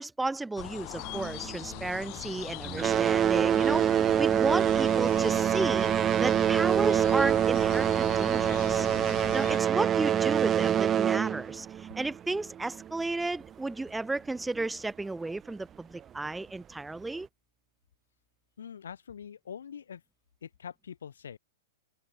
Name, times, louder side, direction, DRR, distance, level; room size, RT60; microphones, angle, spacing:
voice 1, 0.0-3.8 4.2-5.9 6.2-8.9 9.3-17.3, right 2 dB, 5° right, 1.8 m, -33 dB
sound 1, 0.6-9.6, left 33 dB, 40° left, 1.6 m, -41 dB
sound 2, 1.0-2.3 2.6-12.9 13.8-13.9 14.6-14.7 15.3-15.4, right 9 dB, 20° right, 0.8 m, -26 dB
voice 2, 18.6-20.0 20.4-21.4, left 8 dB, 70° left, 3.4 m, -44 dB
figure-of-eight pair, 110°, 0 cm